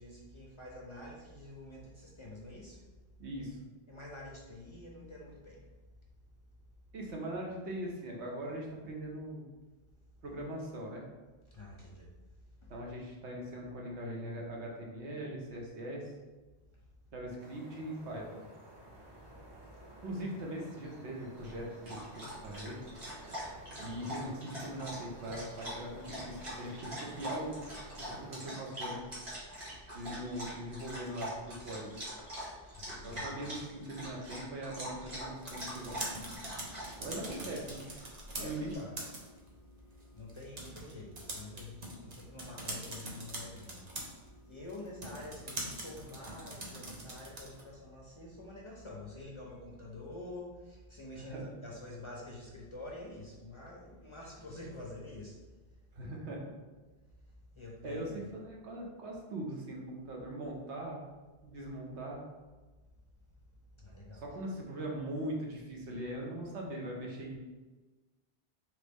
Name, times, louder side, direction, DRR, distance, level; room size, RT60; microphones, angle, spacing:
voice 1, 0.0-2.8 3.9-5.6 11.5-12.1 12.6-12.7 32.2-32.3 32.7-33.5 38.4-38.9 40.1-43.8 44.5-55.3 57.5-58.2 63.8-64.2, left 2 dB, 35° left, -3 dB, 0.6 m, -47 dB
voice 2, 3.2-3.6 6.9-9.4 10.2-11.0 12.7-16.1 17.1-18.4 20.0-22.8 23.8-27.6 28.0-29.0 29.9-32.0 33.0-36.0 37.0-37.9 38.4-38.7 51.2-51.5 55.9-56.5 57.8-61.0 61.4-62.3 64.1-67.4, right 1 dB, 85° right, -1 dB, 1.2 m, -41 dB
sound 1, 17.4-28.4, right 1 dB, 25° right, 1.1 m, -53 dB
Dog, 21.4-38.7, equal, 60° right, 1.7 m, -44 dB
sound 2, 35.2-47.7, right 1 dB, 40° right, 0.8 m, -44 dB
4.0 x 3.3 x 3.5 m, 1.2 s
omnidirectional pair, 1.1 m